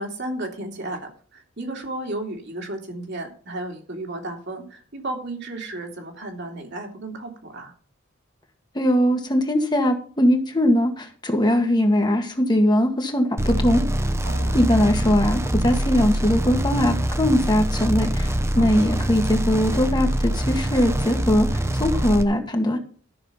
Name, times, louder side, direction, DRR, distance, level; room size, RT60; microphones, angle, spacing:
voice 1, 0.0-7.7 14.2-14.6 18.5-18.9, right 2 dB, 60° right, 1 dB, 2.9 m, -33 dB
voice 2, 8.7-13.8 14.5-21.5 21.7-22.8, equal, 20° left, 4 dB, 1.6 m, -20 dB
sound 1, 13.4-22.2, equal, 15° right, 0.9 m, -24 dB
13.0 x 6.4 x 5.7 m, 0.43 s
head